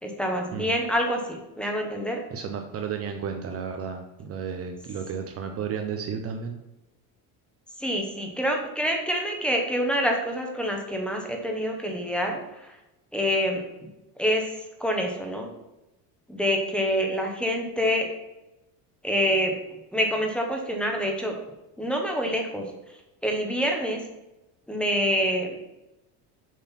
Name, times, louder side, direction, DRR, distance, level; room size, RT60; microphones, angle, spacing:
voice 1, 0.0-2.2 7.8-12.8 13.1-13.6 14.2-14.4 14.8-15.5 16.3-18.1 19.0-19.5 19.9-21.4 21.8-22.7 23.2-24.0 24.7-25.6, equal, 5° left, 1 dB, 1.1 m, -26 dB
voice 2, 2.3-6.6, right 6 dB, 35° right, 4 dB, 0.7 m, -33 dB
7.2 x 3.9 x 5.8 m, 0.96 s
cardioid pair, 145°, 39 cm